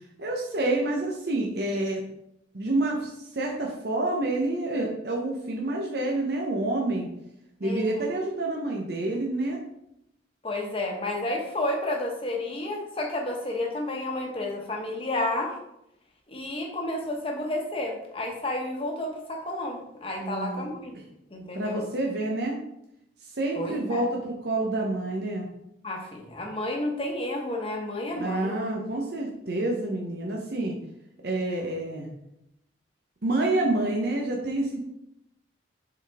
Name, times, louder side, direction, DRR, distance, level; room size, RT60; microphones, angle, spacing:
voice 1, 0.2-2.0 2.5-7.1 7.6-9.6 20.2-20.7 21.5-22.6 23.2-25.5 28.2-30.8 31.2-32.1 33.2-34.8, right 2 dB, 60° right, -1 dB, 0.8 m, -28 dB
voice 2, 7.6-8.0 10.4-15.6 16.3-21.0 21.3-21.8 23.5-24.0 25.8-28.6, left 1 dB, 30° left, 1 dB, 1.1 m, -31 dB
6.9 x 4.0 x 3.5 m, 0.80 s
head